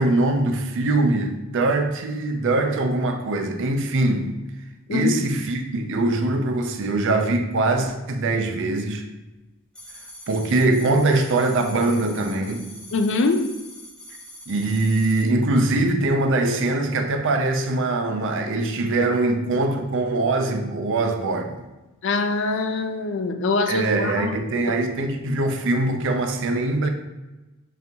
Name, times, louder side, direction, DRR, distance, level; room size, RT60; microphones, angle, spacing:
voice 1, 0.0-4.3 4.9-9.0 10.3-12.7 14.5-21.6 23.7-26.9, right 2 dB, 60° right, 0.5 m, -22 dB
sound 1, 9.8-15.3, left 1 dB, 5° left, 0.5 m, -43 dB
voice 2, 12.9-13.4 22.0-24.4 24.7-24.8, left 3 dB, 55° left, 0.4 m, -23 dB
4.1 x 3.4 x 2.8 m
head